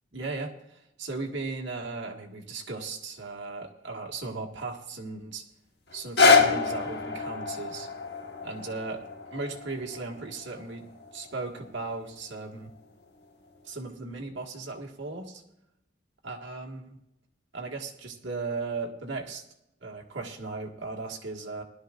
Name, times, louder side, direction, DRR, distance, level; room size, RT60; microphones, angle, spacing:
voice 1, 0.1-5.4 5.9-7.9 8.4-9.0 9.3-10.9 11.1-12.7 13.6-15.4 16.2-17.0 17.5-19.4 19.8-21.6, right 3 dB, 70° right, 1 dB, 1.9 m, -36 dB
sound 1, 5.9-12.0 12.7-12.8, left 4 dB, 60° left, 1.4 m, -27 dB
19.0 x 12.5 x 2.5 m, 0.80 s
head